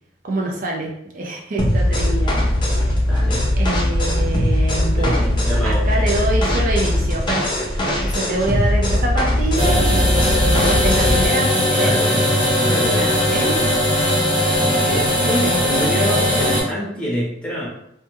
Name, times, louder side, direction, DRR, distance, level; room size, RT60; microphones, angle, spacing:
voice 1, 0.2-2.9 3.5-12.0 12.9-13.6, right 2 dB, 45° right, -2 dB, 0.5 m, -26 dB
sound 1, 1.6-11.3, left 1 dB, 25° left, 0.4 m, -19 dB
voice 2, 3.1-3.5 4.9-6.0 11.8-12.1 12.6-13.1 14.8-17.7, equal, 5° left, -5 dB, 0.8 m, -26 dB
sound 2, 9.6-16.6, equal, 25° right, 1.1 m, -18 dB
2.3 x 2.2 x 3.0 m, 0.75 s
head